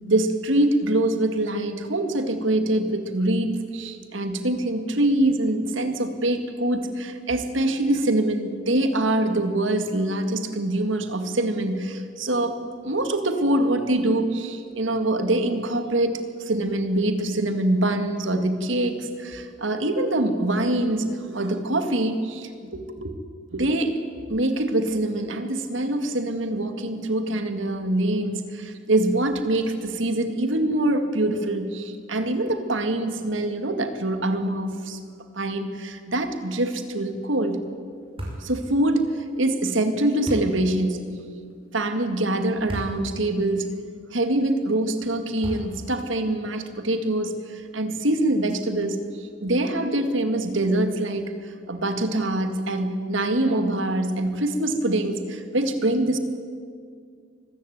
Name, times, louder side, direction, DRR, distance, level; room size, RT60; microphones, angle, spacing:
voice 1, 0.1-23.1 23.5-24.0 24.3-35.0 35.3-37.6 38.4-41.1 41.7-43.7 44.1-56.2, right 1 dB, 75° right, 8 dB, 2.1 m, -24 dB
sound 1, 38.2-38.5 40.2-40.5 42.7-43.0 43.6-43.7 45.4-45.9, equal, 25° right, 5.9 m, -33 dB
24.5 x 14.5 x 9.4 m, 2.1 s
head